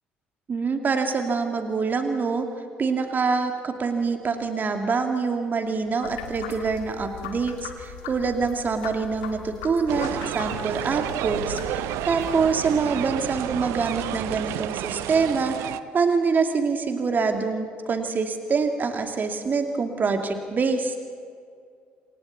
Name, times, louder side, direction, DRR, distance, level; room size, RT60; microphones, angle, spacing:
voice 1, 0.5-2.5 2.8-20.9, right 4 dB, 35° right, 5 dB, 2.5 m, -25 dB
sound 1, 6.0-12.8, left 8 dB, 70° left, 1.6 m, -40 dB
sound 2, 9.9-15.8, right 14 dB, 60° right, 0.6 m, -31 dB
27.0 x 24.0 x 4.1 m, 2.2 s
figure-of-eight pair, 50°, 5 cm